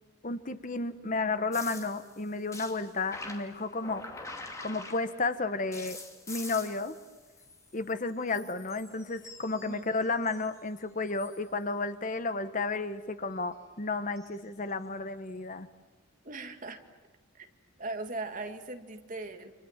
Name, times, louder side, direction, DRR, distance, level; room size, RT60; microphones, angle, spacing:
voice 1, 0.2-4.2 4.6-6.0 6.3-6.9 7.7-15.7, left 3 dB, 35° left, 11 dB, 1.0 m, -32 dB
sound 1, 1.5-5.3 5.7-8.0 8.3-10.6 11.0-11.5 14.2-14.4 15.3-15.4, left 2 dB, 15° left, 2.5 m, -46 dB
voice 2, 9.5-9.9 16.2-16.8 17.3-17.5 17.8-19.5, right 2 dB, 40° right, 6 dB, 1.9 m, -39 dB
30.0 x 26.0 x 7.3 m, 1.2 s
head